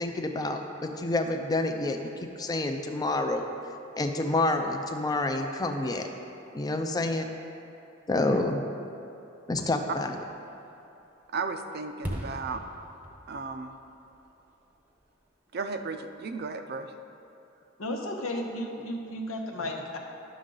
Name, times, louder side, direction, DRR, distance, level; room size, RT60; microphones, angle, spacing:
voice 1, 0.0-3.4 3.9-6.1 6.5-7.3 8.1-8.6 9.5-10.1, left 2 dB, 20° left, 5 dB, 0.5 m, -28 dB
voice 2, 8.1-8.4 11.3-12.6 13.3-13.8 15.5-16.9, right 4 dB, 50° right, 7 dB, 0.5 m, -35 dB
Fireworks, 9.5-15.3 15.7-15.8, equal, 10° right, 0.8 m, -43 dB
voice 3, 17.8-20.0, left 1 dB, 90° left, 1 dB, 1.0 m, -33 dB
11.0 x 6.3 x 3.8 m, 2.8 s
head